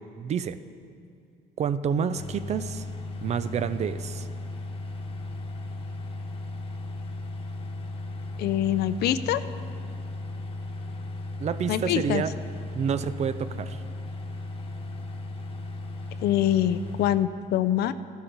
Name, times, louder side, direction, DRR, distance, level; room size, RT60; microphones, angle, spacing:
voice 1, 0.2-0.6 1.6-2.8 3.2-4.3 11.4-12.3 12.7-13.8, right 7 dB, 40° right, 13 dB, 0.4 m, -28 dB
sound 1, 2.2-17.2, left 2 dB, 30° left, 1.1 m, -36 dB
voice 2, 8.4-9.4 11.7-12.2 16.2-17.9, left 11 dB, 70° left, 14 dB, 0.5 m, -24 dB
13.5 x 11.0 x 4.0 m, 2.4 s
cardioid pair, 110°, 17 cm